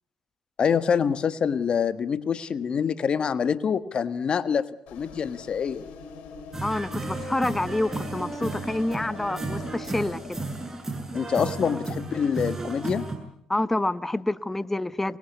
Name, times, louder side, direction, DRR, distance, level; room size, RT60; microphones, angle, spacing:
voice 1, 0.6-5.8 11.1-13.0, left 7 dB, 50° left, 1.5 m, -26 dB
sound 1, 4.9-10.6, left 5 dB, 75° left, 3.9 m, -43 dB
sound 2, 6.5-13.2, right 3 dB, 20° right, 7.2 m, -34 dB
voice 2, 6.6-10.5 13.5-15.2, left 1 dB, 10° left, 1.1 m, -28 dB
24.5 x 21.0 x 8.3 m
supercardioid pair, 65°, 2 cm